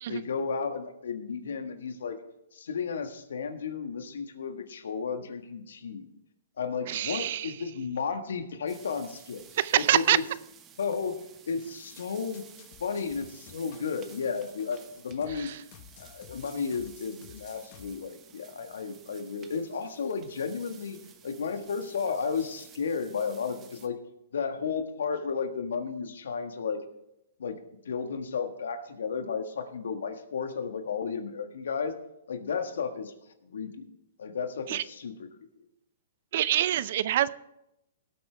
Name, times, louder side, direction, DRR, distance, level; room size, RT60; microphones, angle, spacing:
voice 1, 0.1-2.2 2.5-6.1 6.6-9.4 9.7-10.2 10.8-12.5 12.8-15.5 16.0-24.0 24.3-26.8 27.4-27.6 27.8-32.0 32.3-33.1 33.4-33.9 34.2-35.3 35.5-35.7, left 5 dB, 80° left, 7 dB, 1.6 m, -33 dB
voice 2, 6.9-7.5 9.6-10.2 15.4-15.6 34.7-34.8 36.3-37.3, right 12 dB, 55° right, 17 dB, 0.5 m, -25 dB
sound 1, 8.7-23.9, right 8 dB, 20° right, 1.2 m, -54 dB
sound 2, 12.0-17.9, left 10 dB, 40° left, 1.2 m, -53 dB
18.0 x 8.2 x 3.4 m, 0.85 s
hypercardioid pair, 140°, 0 cm